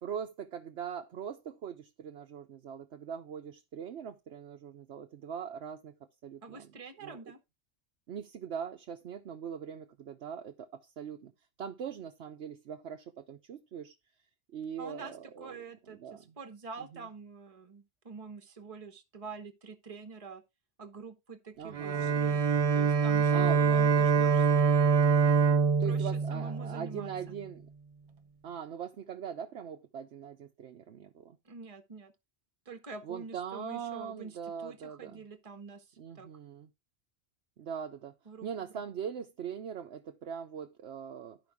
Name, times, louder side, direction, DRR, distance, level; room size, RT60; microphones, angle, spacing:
voice 1, 0.0-5.9 6.2-6.7 7.0-7.2 8.1-11.3 11.6-13.9 14.5-15.6 15.9-16.3 16.8-17.1 21.6-22.2 23.3-23.8 25.8-27.7 28.4-31.4 33.0-35.2 36.0-36.7 37.6-38.1 38.4-41.4, right 8 dB, 80° right, 1.0 m, -41 dB
voice 2, 6.4-7.4 14.8-20.4 20.8-22.4 22.7-24.6 25.8-27.4 31.4-32.1 32.6-36.3 38.2-38.8, right 4 dB, 35° right, 1.1 m, -46 dB
Bowed string instrument, 21.7-27.2, right 5 dB, 50° right, 0.4 m, -25 dB
12.0 x 5.1 x 3.5 m
omnidirectional pair, 1.1 m